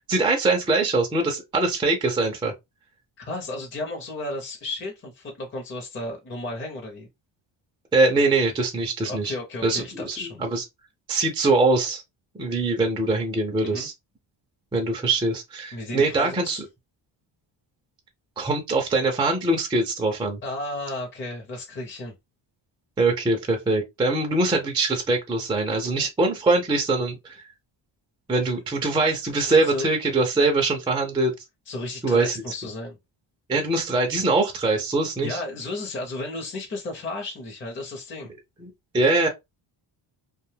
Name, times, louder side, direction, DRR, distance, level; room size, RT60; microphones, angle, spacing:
voice 1, 0.1-2.5 7.9-9.3 9.6-10.6 11.1-12.0 12.4-13.9 14.7-16.6 18.4-20.4 23.0-27.4 28.3-31.3 32.0-32.4 33.5-35.4 38.6-38.7 38.9-39.3, right 3 dB, 10° right, 0.4 m, -23 dB
voice 2, 3.2-7.1 9.1-10.4 13.6-13.9 15.7-16.6 20.4-22.1 25.8-26.1 29.4-29.9 30.4-30.5 31.7-33.0 35.2-38.3, left 2 dB, 25° left, 0.6 m, -34 dB
2.5 x 2.3 x 3.1 m
cardioid pair, 155°, 46 cm